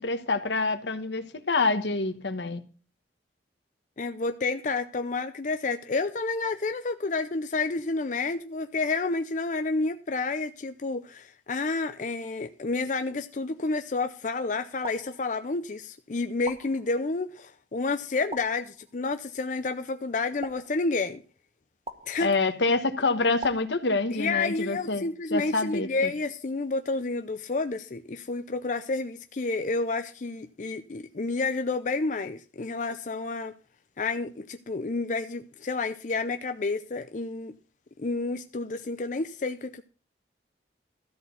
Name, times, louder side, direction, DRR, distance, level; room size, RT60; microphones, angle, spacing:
voice 1, 0.0-2.6 22.2-26.1, left 3 dB, 85° left, 1.2 m, -27 dB
voice 2, 4.0-21.2 22.1-22.3 24.1-33.5 34.0-37.5 38.0-39.8, left 3 dB, 45° left, 0.5 m, -30 dB
sound 1, 14.8-15.7 16.4-17.3 18.3-19.1 20.4-21.3 21.9-22.7 23.4-24.4, right 2 dB, 35° right, 1.2 m, -44 dB
13.0 x 4.4 x 8.3 m
head